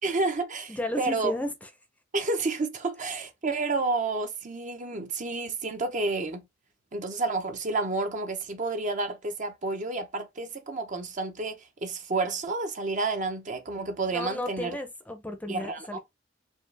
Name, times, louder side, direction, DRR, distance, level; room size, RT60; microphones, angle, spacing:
voice 1, 0.0-1.3 2.1-6.4 6.9-14.8 15.5-16.0, right 3 dB, 40° right, 0.7 m, -30 dB
voice 2, 0.7-1.5 14.1-16.0, left 1 dB, 10° left, 0.6 m, -33 dB
4.5 x 2.3 x 3.3 m
head